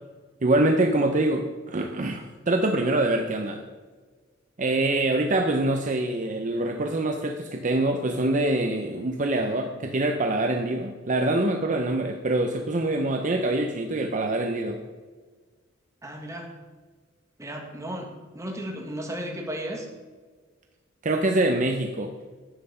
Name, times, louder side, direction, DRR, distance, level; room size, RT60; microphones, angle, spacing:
voice 1, 0.4-3.6 4.6-14.8 21.0-22.1, right 2 dB, 40° right, 4 dB, 0.7 m, -25 dB
voice 2, 16.0-16.5 17.4-19.9, equal, 15° right, 1 dB, 1.7 m, -35 dB
10.0 x 7.8 x 5.6 m, 1.4 s
head